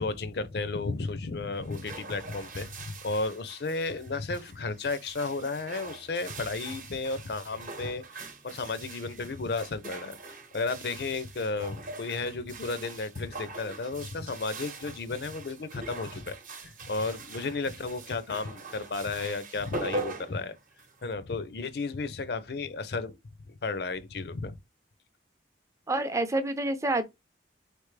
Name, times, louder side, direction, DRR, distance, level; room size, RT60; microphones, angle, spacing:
voice 1, 0.0-10.2 10.5-20.6 21.0-23.2 23.5-24.6, left 3 dB, 65° left, 0.5 m, -33 dB
sound 1, 1.5-21.1, right 2 dB, 45° right, 0.9 m, -42 dB
voice 2, 25.9-27.0, right 2 dB, 15° right, 0.5 m, -28 dB
4.2 x 3.3 x 3.2 m
head